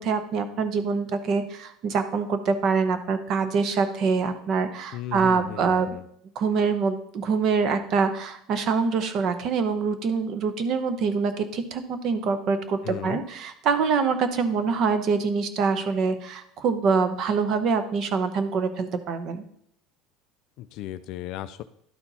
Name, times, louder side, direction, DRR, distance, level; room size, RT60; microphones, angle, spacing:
voice 1, 0.0-6.0 6.4-19.4, right 5 dB, 40° right, 10 dB, 0.8 m, -25 dB
voice 2, 4.9-6.0 12.8-13.2 20.6-21.6, left 13 dB, 55° left, 11 dB, 0.3 m, -35 dB
11.5 x 4.4 x 4.1 m, 0.68 s
cardioid pair, 165°, 0 cm